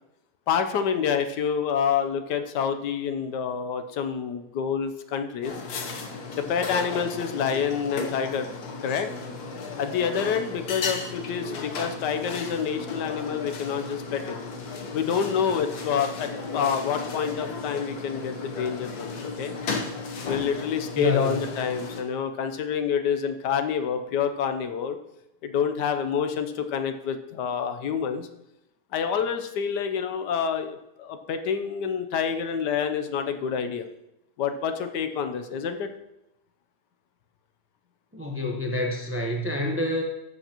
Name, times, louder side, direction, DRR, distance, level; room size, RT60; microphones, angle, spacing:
voice 1, 0.5-5.5 6.4-8.5 8.8-9.1 9.8-14.4 14.9-19.5 20.2-25.0 25.4-28.3 28.9-33.9 34.4-35.9, left 7 dB, 85° left, 8 dB, 1.4 m, -27 dB
sound 1, 5.4-22.0, left 4 dB, 65° left, 1.5 m, -35 dB
voice 2, 20.9-21.4 38.1-40.0, left 1 dB, 10° right, 1 dB, 0.7 m, -27 dB
13.5 x 8.1 x 2.9 m, 0.88 s
omnidirectional pair, 1.8 m